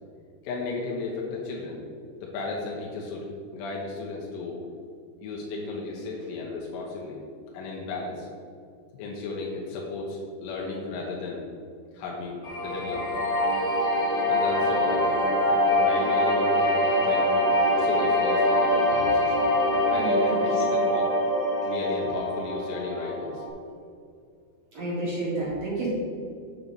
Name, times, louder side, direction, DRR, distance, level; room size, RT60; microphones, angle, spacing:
voice 1, 0.4-1.8 2.2-4.6 5.2-7.2 7.5-8.3 8.9-11.5 11.9-13.2 14.3-19.4 19.7-21.2 21.6-23.4, left 3 dB, 80° left, -3 dB, 3.1 m, -34 dB
sound 1, 12.4-23.5, left 1 dB, 60° left, 2.4 m, -24 dB
voice 2, 19.9-20.4 20.7-20.9 24.7-25.9, right 2 dB, 50° right, -8 dB, 2.3 m, -31 dB
7.4 x 6.7 x 4.0 m, 2.3 s
omnidirectional pair, 5.1 m